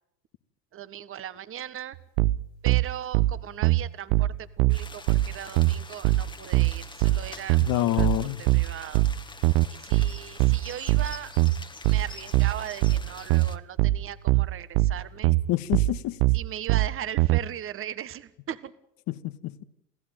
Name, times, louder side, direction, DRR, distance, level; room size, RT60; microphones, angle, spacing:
voice 1, 0.7-2.0 2.6-8.1 8.4-9.0 9.7-11.3 11.8-15.3 16.3-18.7, right 10 dB, 25° right, 1.4 m, -38 dB
sound 1, 2.2-17.4, right 18 dB, 55° right, 0.9 m, -22 dB
sound 2, 4.7-13.6, left 3 dB, 10° left, 1.7 m, -45 dB
voice 2, 7.6-8.4 15.5-16.2 19.1-19.6, left 15 dB, 45° left, 1.6 m, -27 dB
28.0 x 16.0 x 9.2 m
hypercardioid pair, 110°, 49 cm